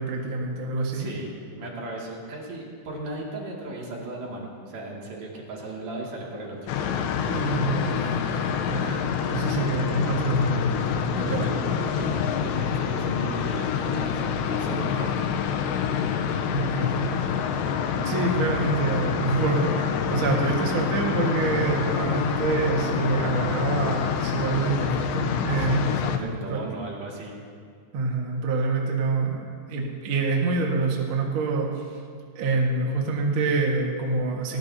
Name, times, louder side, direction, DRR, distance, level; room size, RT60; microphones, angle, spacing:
voice 1, 0.0-1.1 7.3-8.1 8.7-10.7 11.2-11.5 16.5-17.0 18.0-26.1 26.5-26.6 27.9-31.8 32.3-34.6, right 3 dB, 65° right, -1 dB, 1.3 m, -26 dB
voice 2, 0.9-6.7 11.1-15.3 25.6-27.3, right 2 dB, 45° right, -3 dB, 3.1 m, -36 dB
sound 1, 6.7-26.2, left 7 dB, 85° left, 2.9 m, -27 dB
19.0 x 19.0 x 2.8 m, 2.1 s
omnidirectional pair, 5.1 m